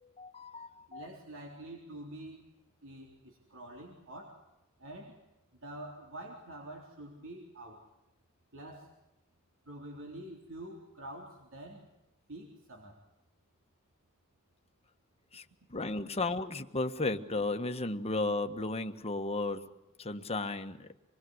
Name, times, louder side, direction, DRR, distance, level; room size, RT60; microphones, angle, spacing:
voice 1, 0.0-1.1 15.3-19.6 20.0-21.0, left 2 dB, 30° left, 7 dB, 1.5 m, -34 dB
voice 2, 0.9-2.5 2.8-4.5 4.8-5.2 5.5-7.9 8.5-9.0 9.7-11.9 12.3-13.1, right 1 dB, 65° right, 1 dB, 3.7 m, -47 dB
27.0 x 21.5 x 8.0 m, 0.95 s
head